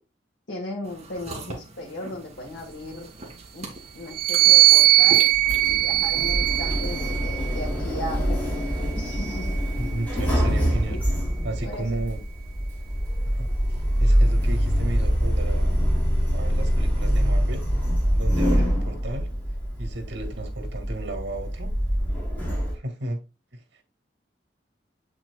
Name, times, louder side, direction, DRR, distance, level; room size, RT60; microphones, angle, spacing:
voice 1, 0.5-3.1 3.5-3.7 3.9-8.7 9.0-9.6 11.6-12.0 18.6-18.9, left 1 dB, 80° left, 1.5 m, -36 dB
sound 1, 0.8-6.5, right 2 dB, 35° right, 1.9 m, -41 dB
sound 2, 4.1-7.7 8.5-10.1, right 18 dB, 55° right, 0.4 m, -20 dB
Sliding door, 5.3-22.7, equal, 10° left, 3.3 m, -24 dB
voice 2, 9.8-11.0 11.4-12.2 13.3-13.5 14.0-15.7 16.3-17.6 18.1-19.3 19.8-21.7 22.7-23.2 23.5-23.6, right 2 dB, 85° right, 2.0 m, -33 dB
8.0 x 6.0 x 2.2 m
head